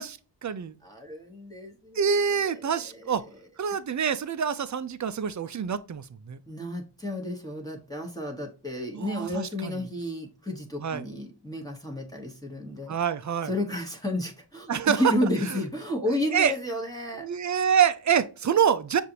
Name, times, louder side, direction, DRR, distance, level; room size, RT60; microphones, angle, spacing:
voice 1, 0.0-0.8 2.0-3.2 3.6-6.4 8.9-9.8 10.8-11.0 12.9-13.5 14.7-15.1 15.5-15.6 16.0-16.1 16.3-16.5 17.2-19.0, right 7 dB, 40° right, 0.5 m, -26 dB
voice 2, 0.8-2.0 2.9-3.1 6.5-12.9 13.4-17.3, left 1 dB, 10° left, 1.1 m, -31 dB
6.5 x 2.6 x 2.8 m
wide cardioid pair, 55°, 45 cm